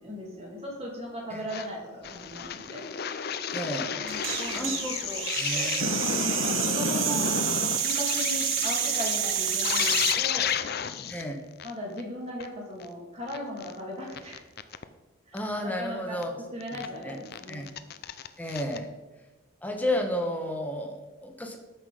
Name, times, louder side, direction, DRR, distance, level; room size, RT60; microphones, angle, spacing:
voice 1, 0.0-2.8 4.0-4.8 5.0-5.2 5.5-6.0 6.3-7.3 7.8-10.5 11.6-14.4 15.6-16.2 16.5-17.6, equal, 30° right, -2 dB, 2.9 m, -37 dB
sound 1, 1.5-1.7 2.0-11.2 11.6-11.7 12.0-12.1 12.4-12.5 12.8-12.9 13.3-13.7 14.1-14.8 15.4-15.5 16.2-16.3 16.6-16.9 17.3-18.8, left 7 dB, 50° left, 0.5 m, -31 dB
voice 2, 3.5-4.0 4.5-5.0 5.4-5.8 11.1-11.4 15.3-16.3 17.0-17.2 17.5-17.7 18.4-18.9 19.6-21.6, left 1 dB, 10° left, 3 dB, 1.2 m, -32 dB
sound 2, 4.1-10.2, right 9 dB, 70° right, 1.0 m, -29 dB
12.5 x 6.1 x 5.1 m, 1.1 s
head